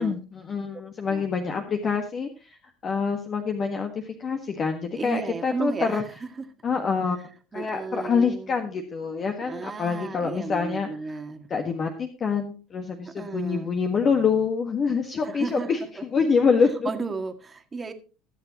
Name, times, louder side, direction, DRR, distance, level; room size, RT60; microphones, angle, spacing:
voice 1, 0.0-2.6 2.8-6.0 6.6-10.9 11.5-15.8 16.1-16.9, left 5 dB, 40° left, 4 dB, 1.5 m, -26 dB
voice 2, 4.9-6.5 7.5-8.6 9.4-11.5 13.0-13.7 15.2-15.7 16.8-17.9, right 4 dB, 25° right, 7 dB, 1.7 m, -34 dB
20.0 x 7.1 x 2.9 m, 0.34 s
supercardioid pair, 95°, 0 cm